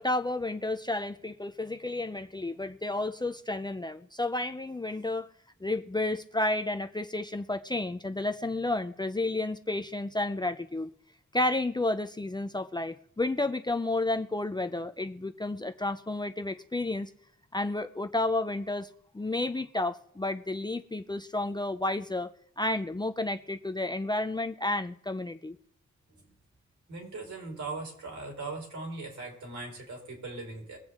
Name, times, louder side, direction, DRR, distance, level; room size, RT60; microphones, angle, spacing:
voice 1, 0.0-5.3 5.6-10.9 11.3-17.1 17.5-18.9 19.1-22.3 22.6-25.6, left 2 dB, 15° left, 7 dB, 0.5 m, -31 dB
voice 2, 26.9-30.8, right 3 dB, 75° right, 0 dB, 5.2 m, -39 dB
23.0 x 8.1 x 3.7 m, 0.66 s
wide cardioid pair, 155°, 29 cm